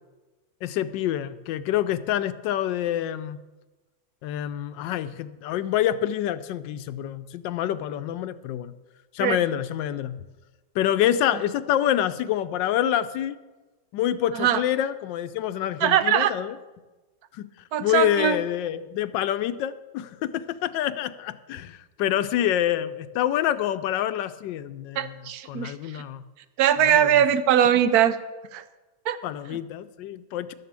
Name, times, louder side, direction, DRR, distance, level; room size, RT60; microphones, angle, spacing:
voice 1, 0.6-3.4 4.2-8.7 9.1-10.2 10.7-13.4 13.9-16.5 17.3-17.5 17.8-26.2 26.8-27.1 29.2-30.5, left 11 dB, 85° left, 13 dB, 1.3 m, -27 dB
voice 2, 15.8-16.3 17.7-18.4 25.0-26.0 26.6-28.2 28.5-28.6 29.1-29.2, right 10 dB, 65° right, 12 dB, 1.1 m, -21 dB
12.5 x 6.7 x 7.4 m, 1.2 s
omnidirectional pair, 1.9 m